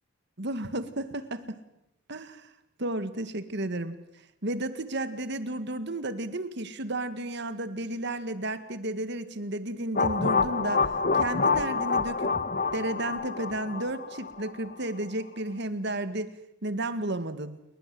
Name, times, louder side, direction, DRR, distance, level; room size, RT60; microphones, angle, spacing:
voice 1, 0.4-1.6 2.1-2.5 2.8-4.0 4.4-10.9 11.1-12.4 12.7-16.3 16.6-17.6, right 1 dB, 60° right, 11 dB, 1.9 m, -33 dB
sound 1, 10.0-14.7, left 4 dB, 45° left, 1.1 m, -27 dB
29.0 x 21.5 x 7.8 m, 0.85 s
head